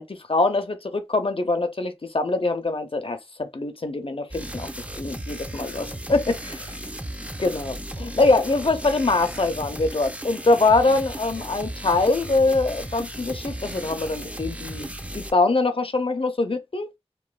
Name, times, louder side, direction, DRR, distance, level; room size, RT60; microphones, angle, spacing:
voice 1, 0.0-4.7 5.0-6.8 7.4-14.9 15.1-16.9, left 3 dB, 60° left, 0.5 m, -23 dB
sound 1, 4.3-15.3, right 1 dB, 10° right, 0.4 m, -35 dB
3.0 x 2.2 x 2.3 m
wide cardioid pair, 45°, 11 cm